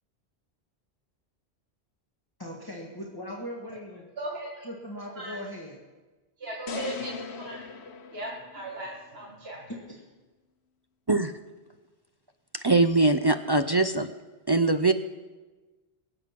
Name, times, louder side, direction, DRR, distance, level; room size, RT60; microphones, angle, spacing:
voice 1, 2.4-4.1 4.6-5.8 9.7-10.0, equal, 20° left, -2 dB, 1.7 m, -39 dB
voice 2, 4.2-4.7 5.2-5.4 6.4-7.7 8.1-9.6, right 1 dB, 70° right, -3 dB, 2.0 m, -37 dB
sound 1, 6.7-9.0, left 5 dB, 90° left, 1.2 m, -39 dB
voice 3, 12.6-14.1 14.5-14.9, right 2 dB, 35° right, 8 dB, 0.4 m, -22 dB
22.5 x 7.8 x 5.9 m, 1.2 s
omnidirectional pair, 1.1 m